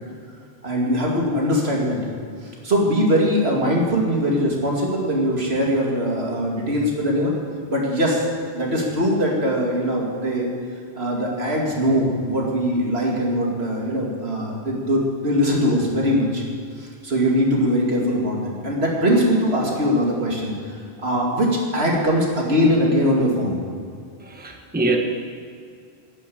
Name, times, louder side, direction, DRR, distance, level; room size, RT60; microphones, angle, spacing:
voice 1, 0.6-2.0 2.4-7.3 7.7-8.3 8.5-10.5 10.9-16.4 16.8-20.5 21.0-23.6, equal, 75° right, -2 dB, 2.7 m, -21 dB
voice 2, 24.2-25.0, right 2 dB, 10° right, 2 dB, 1.1 m, -24 dB
11.5 x 9.8 x 8.6 m, 2.2 s
omnidirectional pair, 1.1 m